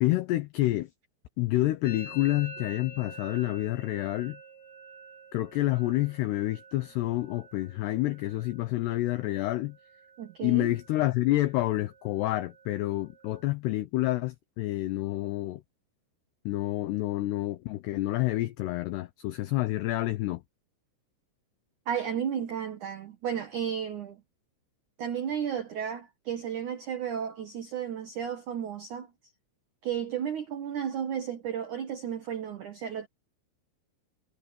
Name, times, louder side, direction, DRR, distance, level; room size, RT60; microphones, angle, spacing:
voice 1, 0.0-0.9 1.4-4.4 5.3-9.8 10.4-15.6 16.5-20.4, left 17 dB, 90° left, 2.3 m, -28 dB
Musical instrument, 1.8-9.5 9.7-10.3 10.6-11.2 11.4-13.5, right 1 dB, 25° right, 4.8 m, -49 dB
voice 2, 10.2-10.7 21.9-24.2 25.0-29.1 29.8-33.1, right 8 dB, 85° right, 1.7 m, -33 dB
omnidirectional pair, 5.9 m